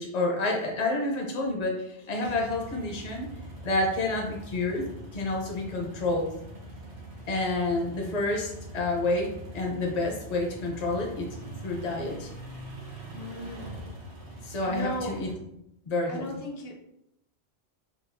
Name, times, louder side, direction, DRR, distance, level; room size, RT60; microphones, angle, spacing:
voice 1, 0.0-3.3 3.6-4.9 5.1-6.3 7.3-11.3 11.6-12.3 14.4-15.3 15.9-16.2, left 2 dB, 45° left, 0 dB, 0.8 m, -29 dB
sound 1, 2.2-15.3, right 1 dB, 85° right, 1.2 m, -43 dB
voice 2, 13.1-13.8 14.4-15.2 16.1-16.8, equal, 70° left, 1 dB, 0.9 m, -36 dB
4.1 x 2.5 x 2.5 m, 0.82 s
omnidirectional pair, 1.1 m